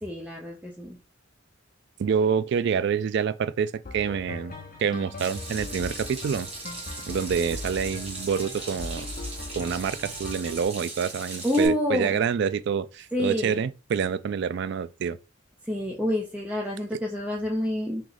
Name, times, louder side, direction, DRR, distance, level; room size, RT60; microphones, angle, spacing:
voice 1, 0.0-1.0 11.4-12.1 13.1-13.6 15.7-18.0, equal, 5° right, 0.6 m, -27 dB
voice 2, 2.0-4.5 4.8-6.5 7.1-9.1 9.5-15.2, right 6 dB, 60° right, 0.3 m, -27 dB
sound 1, 3.8-10.6, left 2 dB, 45° left, 0.8 m, -39 dB
Water tap faucet / Sink (filling or washing), 5.2-11.7, right 2 dB, 30° right, 1.4 m, -39 dB
3.1 x 3.0 x 3.8 m
head